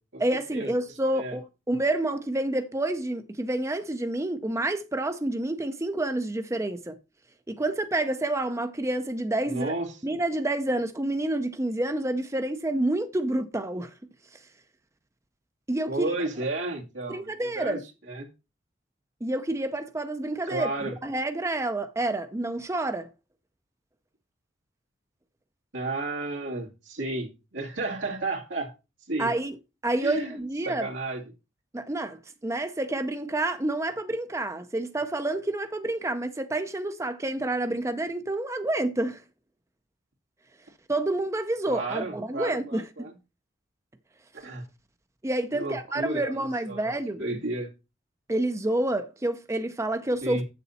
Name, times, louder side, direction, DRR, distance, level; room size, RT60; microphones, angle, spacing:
voice 1, 0.2-7.0 7.5-9.7 10.0-13.9 15.7-16.1 17.1-17.8 19.2-20.7 21.0-23.1 29.2-29.5 29.8-30.9 31.7-32.2 32.4-39.2 40.9-43.1 45.2-47.2 48.3-50.4, right 1 dB, 15° right, 0.6 m, -28 dB
voice 2, 9.5-10.0 15.9-17.8 18.1-18.3 20.5-21.0 25.7-28.7 29.1-29.3 30.0-30.3 30.6-31.2 41.7-43.1 44.3-44.6 45.5-46.3 46.7-46.8 47.2-47.7 50.2-50.4, right 2 dB, 90° right, 2.4 m, -32 dB
8.2 x 7.0 x 4.1 m
head